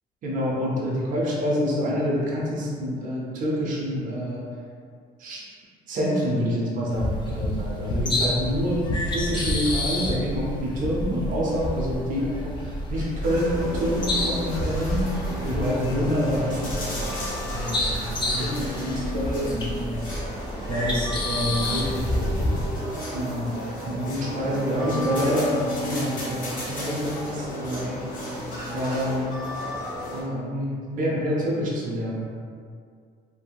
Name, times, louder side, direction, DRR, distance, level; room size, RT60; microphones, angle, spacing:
voice 1, 0.2-4.5 5.2-5.4 5.9-15.0 15.5-20.0 20.7-22.4 23.1-23.6 23.8-28.0 28.7-29.3 30.1-32.3, equal, 50° right, -4 dB, 0.6 m, -27 dB
sound 1, 6.9-22.7, left 1 dB, 30° left, 0.4 m, -29 dB
sound 2, 13.2-30.2, equal, 50° left, 1.0 m, -33 dB
2.7 x 2.6 x 2.2 m, 2.2 s
cardioid pair, 110°, 17 cm